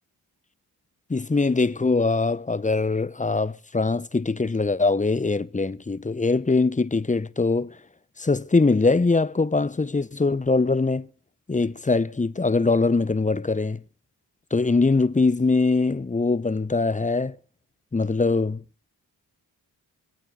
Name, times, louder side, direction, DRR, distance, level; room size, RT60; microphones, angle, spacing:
voice 1, 1.1-7.7 8.2-11.1 11.5-13.8 14.5-17.4 17.9-18.6, left 3 dB, 15° left, 0.8 m, -22 dB
24.5 x 8.9 x 3.8 m
supercardioid pair, 40°, 44 cm